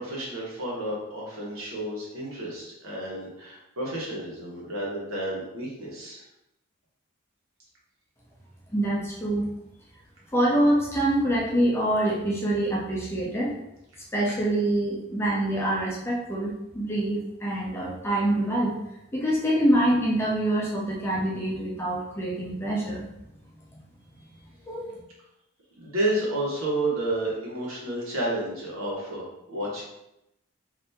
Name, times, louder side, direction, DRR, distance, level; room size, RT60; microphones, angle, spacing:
voice 1, 0.0-6.2 25.8-29.8, right 1 dB, 90° right, -5 dB, 1.2 m, -31 dB
voice 2, 8.7-9.4 10.3-13.5 14.1-18.7 19.1-23.1 24.7-25.0, right 1 dB, 10° left, -5 dB, 0.6 m, -25 dB
2.8 x 2.8 x 3.4 m, 0.85 s
head